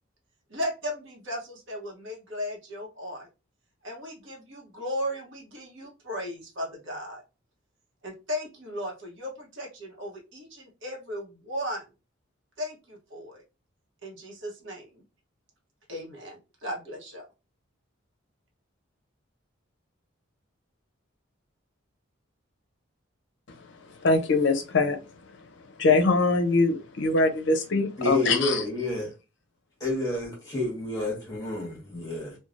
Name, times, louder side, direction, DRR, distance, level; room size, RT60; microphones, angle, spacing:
voice 1, 0.5-3.3 3.8-7.2 8.0-11.8 12.6-13.4 14.0-15.0 15.9-17.3, equal, 65° right, 0.9 m, -36 dB
voice 2, 24.0-25.0 25.8-28.6, left 3 dB, 60° left, 0.5 m, -22 dB
voice 3, 28.0-29.1 29.8-32.4, left 2 dB, 15° left, 1.3 m, -29 dB
3.1 x 2.2 x 2.5 m
head